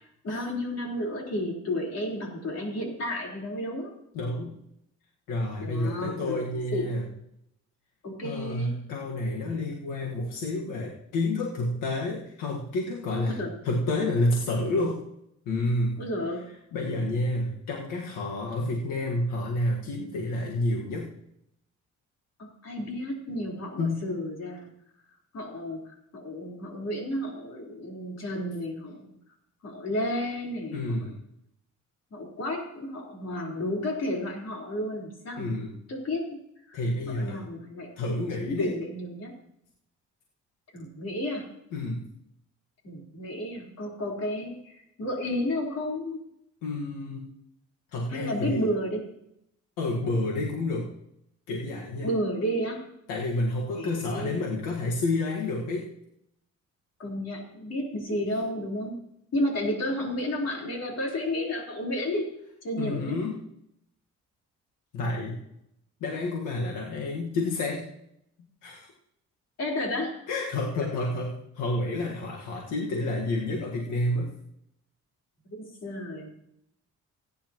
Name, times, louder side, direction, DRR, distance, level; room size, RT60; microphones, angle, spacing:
voice 1, 0.2-3.9 5.6-6.5 6.7-6.9 8.0-8.7 13.3-13.5 16.0-16.4 22.4-24.7 25.3-29.1 29.6-31.0 32.1-35.5 35.9-36.4 36.7-36.8 37.1-37.9 38.4-39.3 40.7-41.5 42.8-46.2 48.1-49.0 52.0-52.8 53.7-54.5 57.0-59.0 59.3-62.3 62.6-63.2 69.6-70.1 70.8-70.9 75.5-76.3, left 1 dB, 55° left, -1 dB, 4.1 m, -32 dB
voice 2, 4.1-4.6 5.3-7.0 8.2-13.4 13.6-15.0 15.4-16.0 16.7-21.1 23.8-24.0 30.7-31.2 35.4-35.7 36.7-37.4 38.0-38.8 41.7-42.1 46.6-47.3 47.9-48.7 49.8-50.9 51.5-52.1 53.1-55.9 62.8-63.4 64.9-65.4 66.0-67.9 68.6-68.9 70.3-74.3, left 2 dB, 90° left, -1 dB, 1.6 m, -29 dB
17.5 x 9.9 x 3.0 m, 0.78 s
cardioid pair, 90°, 30 cm